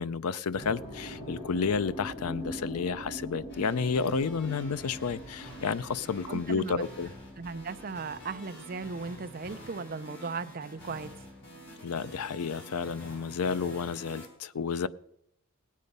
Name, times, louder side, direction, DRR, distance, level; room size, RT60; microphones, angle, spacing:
voice 1, 0.0-7.1 11.8-14.9, left 5 dB, 85° left, 16 dB, 0.5 m, -31 dB
sound 1, 0.5-10.6 10.9-12.6, equal, 25° left, 5.6 m, -44 dB
sound 2, 3.5-14.3, equal, 55° left, 4.2 m, -48 dB
voice 2, 6.3-6.8 7.4-11.1, right 4 dB, 40° right, 11 dB, 0.5 m, -37 dB
19.0 x 8.5 x 5.3 m, 0.78 s
head